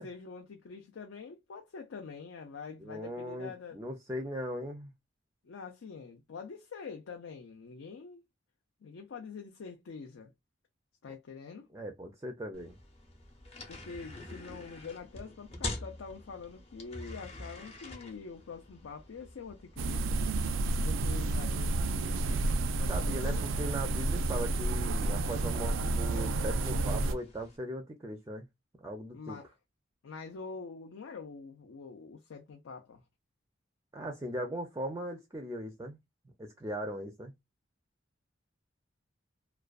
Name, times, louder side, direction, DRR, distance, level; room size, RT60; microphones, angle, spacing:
voice 1, 0.0-3.8 5.4-8.2 8.8-10.3 11.0-11.7 13.7-20.2 20.8-22.2 22.8-23.5 29.1-29.5 30.0-33.0, left 5 dB, 90° left, 0.5 m, -45 dB
voice 2, 2.8-4.9 11.7-12.8 22.9-28.4 28.8-29.4 33.9-36.0 36.4-37.3, right 1 dB, 15° right, 0.4 m, -39 dB
sound 1, 12.5-27.6, left 2 dB, 30° left, 0.6 m, -47 dB
sound 2, 19.8-27.1, right 2 dB, 85° right, 0.3 m, -30 dB
2.4 x 2.2 x 2.3 m
head